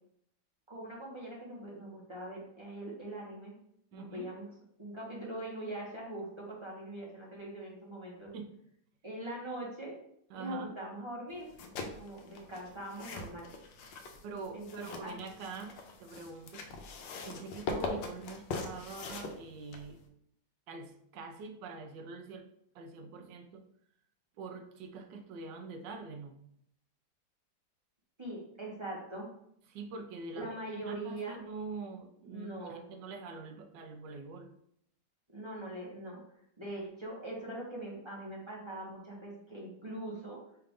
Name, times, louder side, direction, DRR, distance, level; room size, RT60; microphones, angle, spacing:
voice 1, 0.7-3.5 3.9-4.5 4.8-8.3 9.0-9.9 10.3-11.5 11.9-13.5 14.5-15.2 28.2-29.3 30.3-31.4 32.3-32.8 35.3-36.2 36.6-40.4, right 1 dB, 20° right, -4 dB, 0.8 m, -42 dB
voice 2, 3.9-4.3 8.3-8.5 10.3-10.7 14.2-16.7 17.2-20.0 20.7-22.5 22.7-23.6 24.4-26.4 29.7-30.6 30.8-34.5, right 4 dB, 80° right, 6 dB, 1.2 m, -44 dB
sound 1, 11.4-20.1, left 3 dB, 80° left, 1.3 m, -42 dB
5.6 x 2.5 x 3.5 m, 0.71 s
omnidirectional pair, 2.0 m